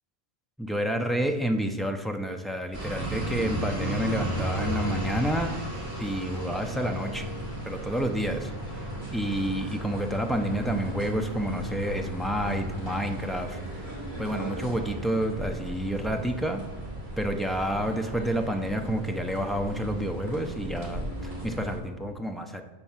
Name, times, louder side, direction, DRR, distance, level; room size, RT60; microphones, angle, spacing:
voice 1, 0.6-5.6 6.0-7.2 7.7-8.5 9.1-13.6 14.2-16.6 17.2-22.6, equal, ahead, 4 dB, 0.6 m, -29 dB
sound 1, 2.7-21.8, right 1 dB, 80° right, 4.2 m, -35 dB
10.5 x 4.5 x 7.4 m, 1.1 s
omnidirectional pair, 1.1 m